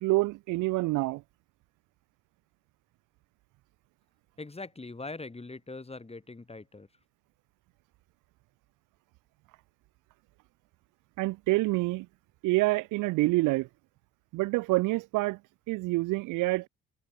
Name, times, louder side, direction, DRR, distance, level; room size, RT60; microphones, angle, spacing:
voice 1, 0.0-1.2 11.2-12.1 12.4-13.7 14.3-15.4 15.7-16.7, right 21 dB, 75° right, 0.9 m, -27 dB
voice 2, 4.4-6.9, left 3 dB, 20° left, 4.3 m, -42 dB
hypercardioid pair, 60°, 32 cm